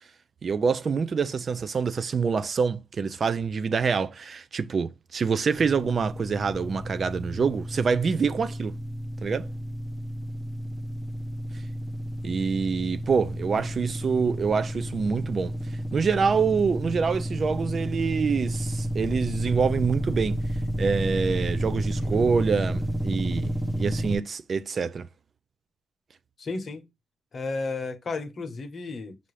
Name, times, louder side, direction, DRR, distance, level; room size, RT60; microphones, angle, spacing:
voice 1, 0.4-8.7 9.2-9.5 12.2-15.6 15.9-20.4 20.8-25.1, right 5 dB, 45° right, 0.4 m, -26 dB
sound 1, 5.6-24.2, equal, 5° right, 0.8 m, -31 dB
voice 2, 26.4-26.8 27.3-29.2, left 3 dB, 45° left, 0.9 m, -33 dB
5.4 x 2.6 x 3.2 m
cardioid pair, 90°, 0 cm